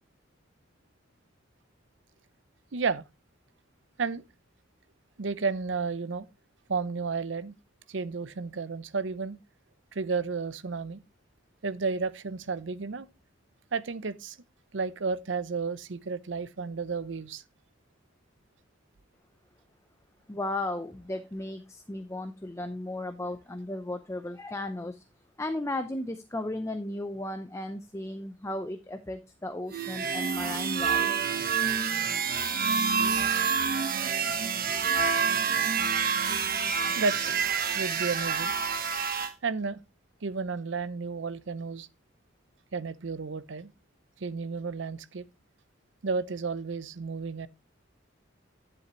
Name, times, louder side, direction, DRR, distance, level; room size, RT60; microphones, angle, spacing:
voice 1, 2.7-3.0 4.0-4.2 5.2-6.3 6.7-7.5 7.9-9.4 9.9-11.0 11.6-13.1 13.7-14.4 14.7-17.4 37.0-37.2 37.7-38.5 39.4-39.8 40.2-41.9 42.7-43.7 44.2-45.2 46.0-47.5, right 4 dB, 65° right, 0.7 m, -32 dB
voice 2, 20.3-25.0 25.4-31.2, left 1 dB, 15° left, 0.6 m, -35 dB
sound 1, 29.7-39.3, right 6 dB, 50° right, 1.0 m, -27 dB
10.5 x 7.8 x 3.0 m
head